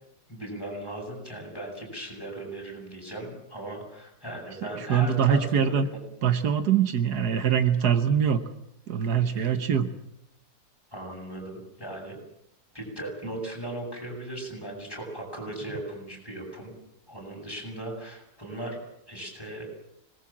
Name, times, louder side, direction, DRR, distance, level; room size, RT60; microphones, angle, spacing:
voice 1, 0.3-6.0 9.3-9.5 10.9-12.2 12.7-16.7 17.1-18.8 19.1-19.7, right 1 dB, 15° left, -1 dB, 7.8 m, -38 dB
voice 2, 4.9-5.9 6.2-8.4 8.9-9.9, right 8 dB, 80° right, 10 dB, 1.8 m, -23 dB
25.5 x 19.5 x 7.5 m, 0.78 s
omnidirectional pair, 1.7 m